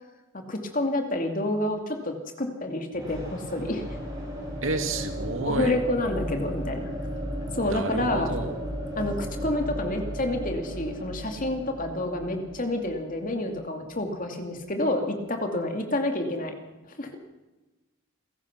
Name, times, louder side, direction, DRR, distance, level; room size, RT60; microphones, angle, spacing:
voice 1, 0.3-3.8 5.4-6.9 7.5-8.3 9.0-16.5 17.0-17.1, left 1 dB, 35° left, 4 dB, 2.5 m, -29 dB
sound 1, 2.9-14.7, equal, 15° right, 7.3 m, -35 dB
voice 2, 4.6-5.7 7.6-8.5, right 3 dB, 60° right, 6 dB, 2.5 m, -30 dB
28.0 x 16.0 x 6.1 m, 1.1 s
head